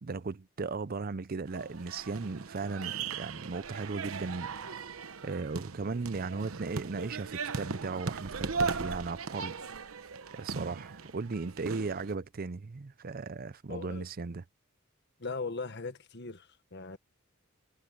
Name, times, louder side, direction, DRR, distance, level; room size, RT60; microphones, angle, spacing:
voice 1, 0.0-4.5 4.9-9.6 10.3-14.4, right 4 dB, 45° right, 0.5 m, -37 dB
sound 1, 1.5-12.1, right 4 dB, 90° right, 1.0 m, -38 dB
voice 2, 13.7-14.1 15.2-17.0, left 4 dB, 55° left, 1.5 m, -39 dB
head